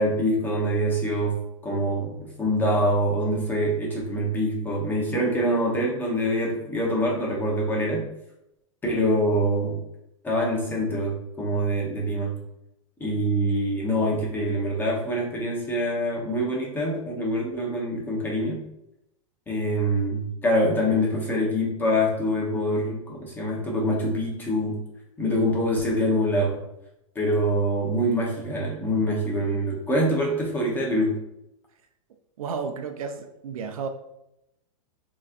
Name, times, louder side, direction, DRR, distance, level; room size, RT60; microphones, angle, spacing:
voice 1, 0.0-8.0 8.8-9.8 10.2-12.4 13.0-18.6 19.5-24.8 25.2-26.6 27.1-31.2, equal, 10° left, -3 dB, 1.0 m, -25 dB
voice 2, 32.4-33.9, right 5 dB, 85° right, 5 dB, 0.7 m, -32 dB
6.2 x 3.1 x 2.5 m, 0.83 s
supercardioid pair, 150°, 18 cm